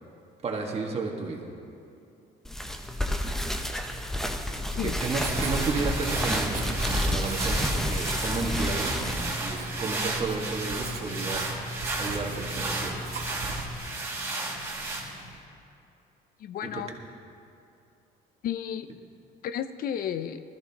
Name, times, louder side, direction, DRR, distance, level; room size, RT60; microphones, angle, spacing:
voice 1, 0.4-1.5 4.8-11.4 12.0-13.1 16.7-16.8, right 4 dB, 35° right, 1 dB, 1.8 m, -32 dB
sound 1, 2.4-9.5, left 1 dB, ahead, 0.9 m, -30 dB
sound 2, 4.7-15.4, right 2 dB, 15° right, 2.4 m, -33 dB
Writing, 4.8-13.7, right 1 dB, 65° right, 1.8 m, -38 dB
voice 2, 16.4-16.9 18.4-18.9 19.4-20.4, left 9 dB, 60° left, 11 dB, 0.5 m, -32 dB
20.0 x 14.0 x 3.0 m, 2.6 s
cardioid pair, 110°, 17 cm